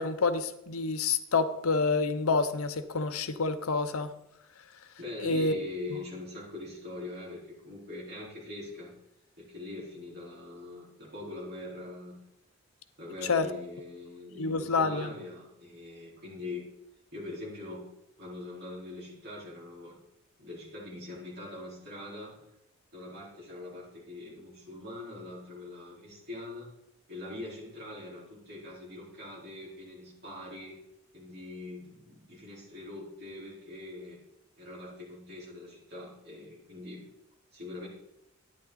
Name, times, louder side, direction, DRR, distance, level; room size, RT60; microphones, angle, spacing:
voice 1, 0.0-4.1 5.2-5.6 5.9-6.0 13.2-13.5 14.4-15.1, left 4 dB, 75° left, 0.8 m, -28 dB
voice 2, 5.0-8.9 9.4-12.2 13.0-16.6 17.1-17.9 18.2-20.0 20.4-22.4 22.9-26.7 27.1-30.8 31.1-34.2 34.6-37.0 37.5-37.9, left 2 dB, 45° right, 4.2 m, -42 dB
11.5 x 9.7 x 4.0 m
head